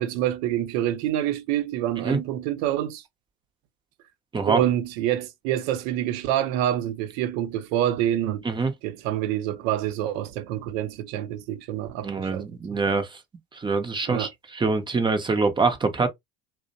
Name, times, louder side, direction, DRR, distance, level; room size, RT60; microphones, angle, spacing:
voice 1, 0.0-3.0 4.5-8.4 8.8-12.5 14.1-14.3, right 12 dB, 65° right, 0.6 m, -27 dB
voice 2, 12.0-13.1 13.5-16.1, right 4 dB, 10° right, 0.4 m, -24 dB
2.4 x 2.0 x 2.5 m
hypercardioid pair, 85°, 42 cm